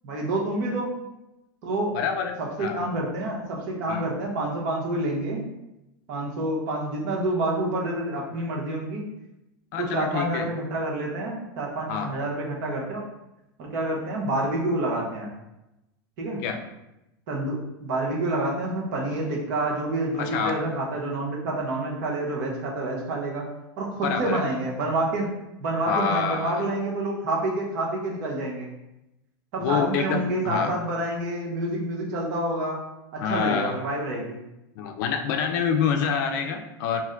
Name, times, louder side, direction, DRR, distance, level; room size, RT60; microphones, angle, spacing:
voice 1, 0.0-0.9 1.6-1.9 2.4-5.4 6.1-9.0 9.8-13.0 13.6-15.3 16.2-16.4 17.3-23.5 23.8-25.3 25.6-28.7 29.5-32.8 33.1-34.4, right 2 dB, 60° right, -2 dB, 1.0 m, -28 dB
voice 2, 1.9-2.9 3.9-4.0 9.7-10.5 11.9-12.1 16.4-16.6 20.2-20.6 24.0-24.4 25.9-26.7 29.6-30.7 33.2-33.8 34.8-37.0, left 6 dB, 60° left, 5 dB, 0.4 m, -27 dB
2.6 x 2.1 x 3.7 m, 0.91 s
supercardioid pair, 125°, 12 cm